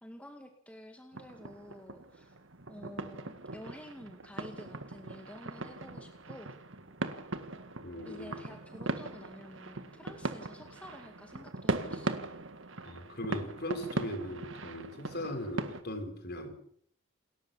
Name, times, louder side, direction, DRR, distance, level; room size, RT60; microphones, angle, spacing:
voice 1, 0.0-2.4 2.7-6.6 8.1-12.3, equal, 5° left, 4 dB, 2.1 m, -50 dB
sound 1, 1.1-15.8, right 2 dB, 60° right, 1.8 m, -39 dB
voice 2, 7.8-8.4 12.8-16.5, left 1 dB, 50° left, 6 dB, 5.0 m, -39 dB
28.5 x 14.5 x 7.2 m, 0.67 s
head